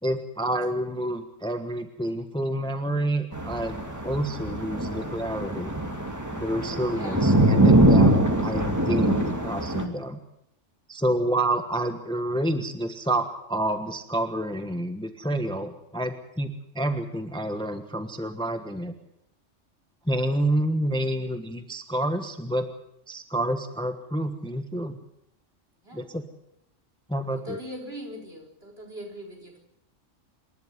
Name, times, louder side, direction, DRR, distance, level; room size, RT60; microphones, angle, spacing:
voice 1, 0.0-5.7 6.3-8.1 8.4-10.2 10.9-18.9 20.0-22.7 23.1-25.0 25.9-26.2 27.1-27.6, right 1 dB, 5° left, 7 dB, 1.2 m, -28 dB
sound 1, 3.3-9.9, right 1 dB, 15° right, 2.4 m, -22 dB
voice 2, 6.9-7.3 25.8-26.1 27.3-29.6, equal, 55° right, 0 dB, 4.9 m, -40 dB
27.0 x 12.0 x 9.5 m, 0.81 s
omnidirectional pair, 1.3 m